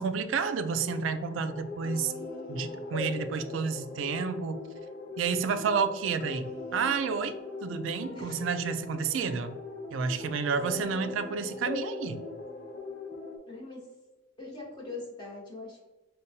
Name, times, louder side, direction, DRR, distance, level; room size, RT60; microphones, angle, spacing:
voice 1, 0.0-2.1 2.5-4.6 5.2-9.6 9.9-12.2, right 5 dB, 80° right, 10 dB, 0.3 m, -30 dB
sound 1, 0.7-13.4, left 3 dB, 50° left, 0.5 m, -40 dB
voice 2, 13.5-13.9 14.4-15.8, left 3 dB, 25° left, -5 dB, 1.0 m, -42 dB
5.2 x 2.1 x 2.7 m, 1.1 s
head